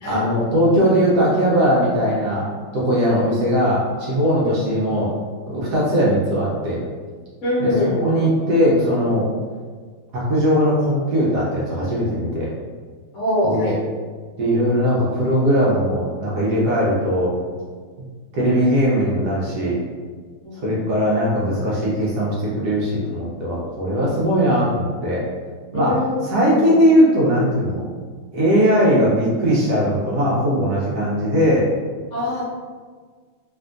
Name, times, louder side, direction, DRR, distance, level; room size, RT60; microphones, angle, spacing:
voice 1, 0.0-2.4 2.7-5.1 5.5-6.8 7.6-7.7 8.0-9.3 10.1-12.5 13.4-13.7 14.4-17.3 18.0-18.1 18.3-19.8 20.5-25.2 25.7-26.0 26.2-27.8 28.3-31.7, equal, 70° right, -6 dB, 0.9 m, -19 dB
voice 2, 7.4-8.1 13.1-13.8 20.4-20.7 25.7-26.8 32.1-32.4, left 1 dB, 55° left, -8 dB, 0.9 m, -23 dB
3.4 x 2.5 x 2.5 m, 1.5 s
omnidirectional pair, 2.4 m